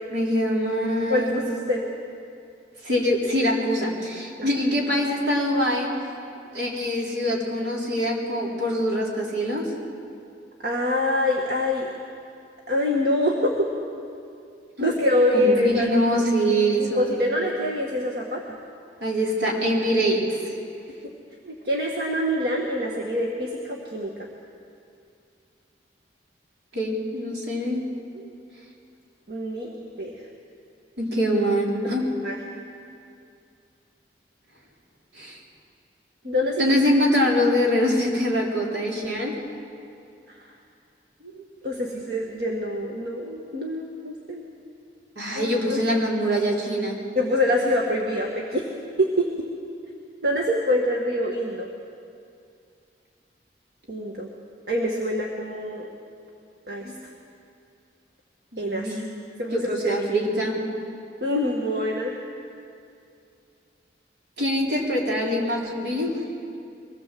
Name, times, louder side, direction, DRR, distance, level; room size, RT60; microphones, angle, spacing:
voice 1, 0.1-1.3 2.8-5.9 6.5-9.7 14.8-14.9 15.3-17.1 19.0-20.5 26.7-27.8 29.5-29.6 31.0-32.1 35.2-35.4 36.6-39.3 41.3-41.4 45.2-47.0 56.8-56.9 58.5-59.0 59.5-60.5 64.4-66.1, equal, 75° right, -3 dB, 4.3 m, -24 dB
voice 2, 1.1-1.8 4.4-4.5 10.6-11.9 12.7-13.7 14.8-15.9 16.8-18.6 21.4-24.1 28.1-28.3 29.3-30.2 31.8-31.9 32.2-32.4 36.2-36.7 41.6-44.4 45.4-45.8 47.2-48.6 49.0-49.3 50.2-51.7 53.9-54.3 54.7-55.9 56.7-56.9 58.6-59.1 59.4-60.0 61.2-62.1, left 1 dB, 60° right, -1 dB, 1.7 m, -25 dB
23.0 x 18.0 x 7.7 m, 2.5 s
head